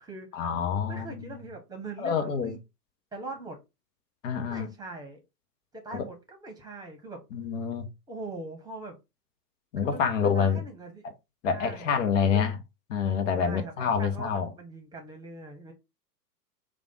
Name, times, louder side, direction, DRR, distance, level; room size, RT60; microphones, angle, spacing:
voice 1, 0.3-1.4 2.0-2.6 4.2-4.7 5.9-6.0 7.3-7.9 9.7-10.6 11.4-12.5 12.9-14.5, left 6 dB, 50° left, 1.1 m, -27 dB
voice 2, 0.9-2.6 3.1-3.6 4.5-5.2 5.7-7.2 8.1-9.0 9.8-11.1 11.5-11.9 12.2-12.4 13.4-15.7, right 2 dB, 10° right, 1.2 m, -42 dB
5.1 x 2.5 x 3.8 m
hypercardioid pair, 110°, 48 cm